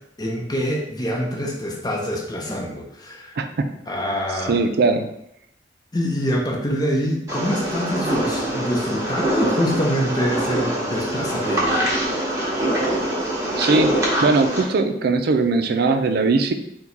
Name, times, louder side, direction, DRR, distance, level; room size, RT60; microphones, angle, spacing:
voice 1, 0.2-3.4 3.9-4.6 5.9-11.9, equal, 25° left, -1 dB, 0.8 m, -25 dB
voice 2, 4.5-5.1 13.6-16.5, right 3 dB, 60° right, 7 dB, 0.4 m, -20 dB
sound 1, 7.3-14.6, right 1 dB, 15° right, 1.1 m, -24 dB
4.6 x 2.2 x 4.0 m, 0.78 s
head